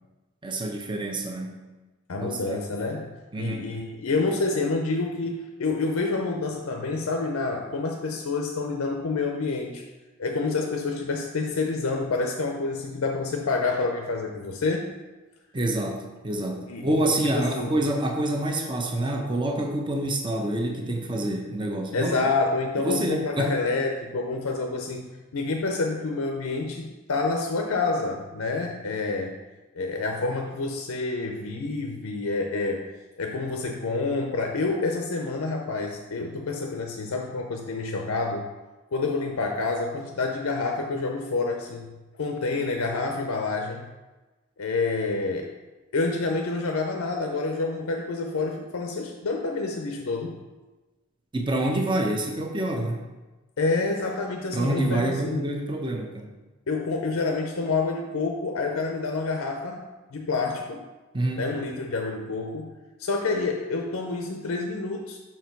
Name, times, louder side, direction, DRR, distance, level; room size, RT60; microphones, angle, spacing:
voice 1, 0.4-1.6 2.2-2.6 3.3-3.7 15.5-22.1 22.8-23.6 51.3-53.0 54.5-56.3 61.1-61.5, right 1 dB, 25° right, 2 dB, 0.7 m, -27 dB
voice 2, 2.1-3.1 3.4-9.8 10.2-14.9 16.7-16.9 17.2-17.7 21.9-29.4 29.7-32.8 33.2-38.5 38.9-43.9 44.6-45.5 45.9-50.4 53.6-55.5 56.7-60.9 61.4-62.7 63.0-65.2, left 3 dB, 90° left, 3 dB, 0.6 m, -28 dB
5.9 x 4.5 x 4.5 m, 1.2 s
head